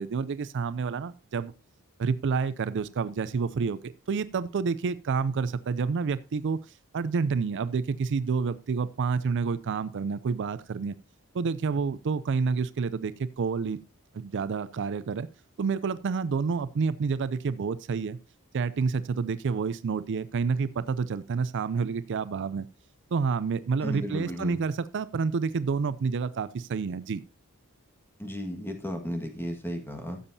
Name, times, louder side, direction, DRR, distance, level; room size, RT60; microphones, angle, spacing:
voice 1, 0.0-1.5 2.0-6.6 6.9-10.9 11.3-13.8 14.1-15.3 15.6-18.2 18.5-22.7 23.1-27.2, right 5 dB, 55° right, 16 dB, 0.4 m, -29 dB
voice 2, 23.8-24.6 28.2-30.2, equal, 10° left, 4 dB, 1.6 m, -34 dB
15.0 x 7.1 x 2.7 m, 0.31 s
head